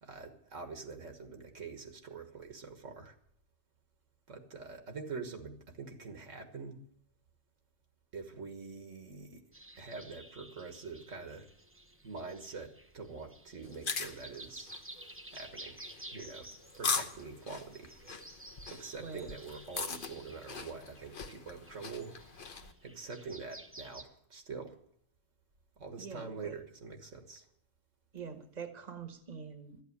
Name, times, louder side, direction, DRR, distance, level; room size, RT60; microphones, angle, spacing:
voice 1, 0.0-3.2 4.3-6.8 8.1-9.4 9.8-11.5 12.0-14.7 15.3-15.8 16.1-16.5 16.8-18.0 18.7-22.2 22.8-24.8 25.8-27.5, right 4 dB, 65° right, 5 dB, 1.9 m, -45 dB
sound 1, 9.5-24.0, right 1 dB, 10° right, 0.9 m, -53 dB
sound 2, 13.6-22.7, left 5 dB, 45° left, 1.1 m, -40 dB
voice 2, 26.0-26.6 28.1-29.8, right 6 dB, 35° right, 6 dB, 1.5 m, -45 dB
13.0 x 8.4 x 9.5 m, 0.67 s
omnidirectional pair, 1.4 m